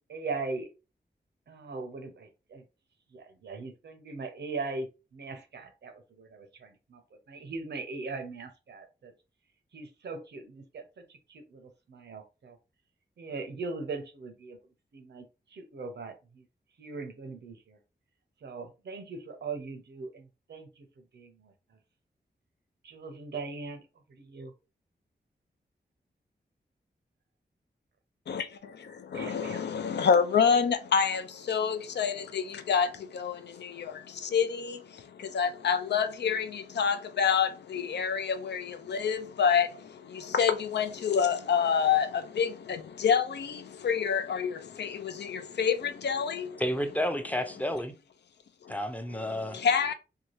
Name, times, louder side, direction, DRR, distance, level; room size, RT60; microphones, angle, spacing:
voice 1, 0.1-0.7 1.5-2.6 3.1-7.0 7.3-9.1 9.7-12.6 13.2-14.6 14.9-16.4 16.8-17.8 18.4-20.8 21.1-21.5 22.8-23.8 24.1-24.5 29.1-29.6, right 3 dB, 80° right, 0.7 m, -40 dB
voice 2, 28.3-46.6 48.6-48.7 49.5-49.9, left 7 dB, 80° left, 0.5 m, -28 dB
voice 3, 46.6-47.9 48.7-49.6, equal, 10° left, 0.5 m, -31 dB
2.7 x 2.2 x 3.1 m
wide cardioid pair, 80°, 17 cm